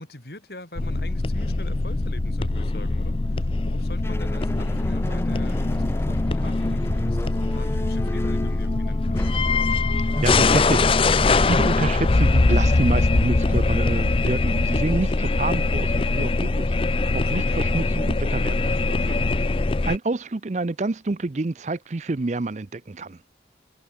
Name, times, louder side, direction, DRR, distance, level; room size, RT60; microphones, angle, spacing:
voice 1, 0.0-9.2 17.1-17.5, left 1 dB, 60° left, 3.4 m, -42 dB
sound 1, 0.8-20.0, left 3 dB, 30° left, 0.5 m, -22 dB
sound 2, 4.0-14.1, equal, 15° left, 1.8 m, -34 dB
voice 2, 10.2-16.7 17.1-19.2 19.8-23.2, right 2 dB, 40° right, 0.5 m, -28 dB
head